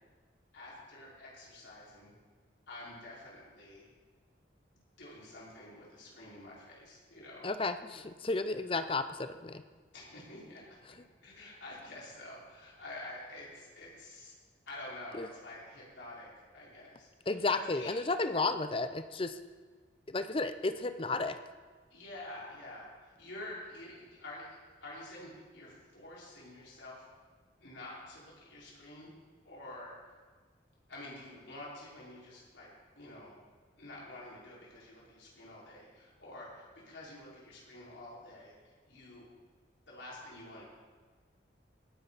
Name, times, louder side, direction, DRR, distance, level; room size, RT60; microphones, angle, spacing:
voice 1, 0.5-2.1 2.7-3.9 4.7-7.5 9.9-11.0 11.2-14.3 14.7-17.9 21.9-27.0 27.6-29.1 29.4-29.9 30.9-33.4 33.8-39.2 39.9-40.6, left 1 dB, 80° left, -6 dB, 4.7 m, -48 dB
voice 2, 7.4-9.6 15.1-15.3 17.3-19.4 20.1-21.4, left 3 dB, 30° left, 10 dB, 0.6 m, -33 dB
18.0 x 9.7 x 4.1 m, 1.4 s
head